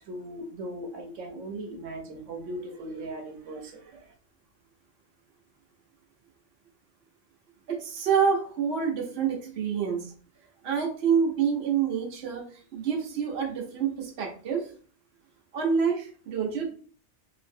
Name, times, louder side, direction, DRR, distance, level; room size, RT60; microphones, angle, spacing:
voice 1, 0.0-4.1, right 1 dB, 85° right, 1 dB, 1.0 m, -38 dB
voice 2, 7.7-10.0 10.6-12.4 12.7-14.7 15.5-16.7, right 6 dB, 60° right, 0 dB, 1.0 m, -27 dB
3.0 x 2.6 x 2.6 m, 0.43 s
omnidirectional pair, 1.2 m